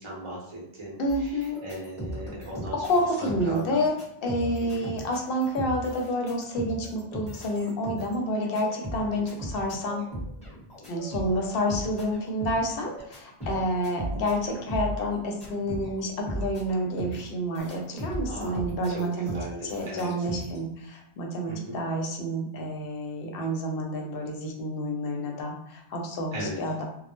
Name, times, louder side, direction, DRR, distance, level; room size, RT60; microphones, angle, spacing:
voice 1, 0.0-3.8 4.6-4.9 18.3-20.1 21.5-21.8 26.3-26.6, right 1 dB, 30° right, -4 dB, 0.8 m, -38 dB
voice 2, 1.0-1.6 2.8-3.9 4.2-10.0 10.9-19.4 19.7-26.8, equal, 65° left, 1 dB, 0.7 m, -29 dB
sound 1, 1.1-16.0 16.3-20.6, equal, 5° left, 1.0 m, -38 dB
2.1 x 2.0 x 2.9 m, 0.76 s
omnidirectional pair, 1.1 m